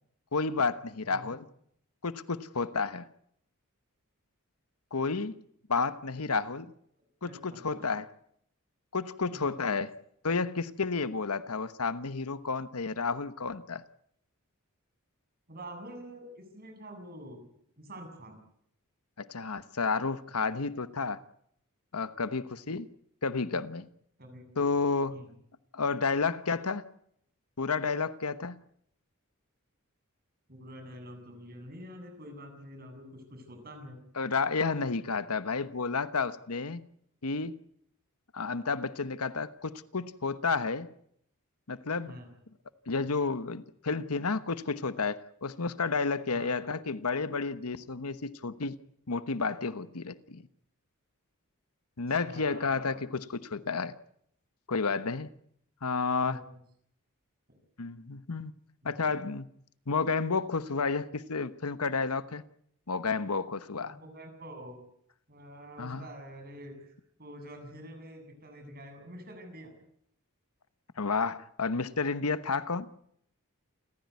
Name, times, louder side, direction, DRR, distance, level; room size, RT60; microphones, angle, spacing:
voice 1, 0.3-1.5 2.0-3.1 4.9-5.4 5.7-6.7 7.2-8.1 8.9-9.9 10.2-13.8 19.2-21.2 21.9-22.9 23.2-23.9 24.6-25.2 25.7-26.8 27.6-28.6 34.2-36.8 37.2-37.6 38.3-40.9 41.7-42.1 42.9-48.8 49.1-50.4 52.0-53.9 54.7-55.3 55.8-56.4 57.8-58.5 58.8-59.5 59.9-62.4 62.9-64.0 65.8-66.1 71.0-72.9, left 4 dB, 85° left, 1.1 m, -31 dB
voice 2, 7.2-7.8 9.3-9.5 15.5-17.4 17.8-18.4 24.2-24.4 25.1-25.3 30.5-34.0 42.1-42.3 46.3-46.5 52.2-53.0 56.2-56.4 57.5-57.6 58.8-59.1 63.8-64.8 65.3-69.7, equal, 45° right, 7.4 m, -47 dB
28.5 x 15.0 x 9.6 m
head